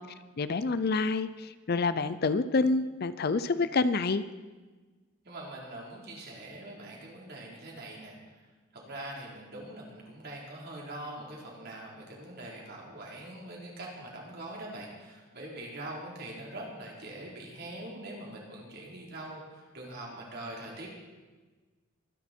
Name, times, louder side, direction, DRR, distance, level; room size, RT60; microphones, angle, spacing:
voice 1, 0.4-4.2, left 3 dB, 50° left, 14 dB, 0.5 m, -27 dB
voice 2, 5.2-8.2 8.7-20.9, right 1 dB, 50° right, -3 dB, 4.1 m, -43 dB
23.5 x 10.5 x 4.5 m, 1.3 s
head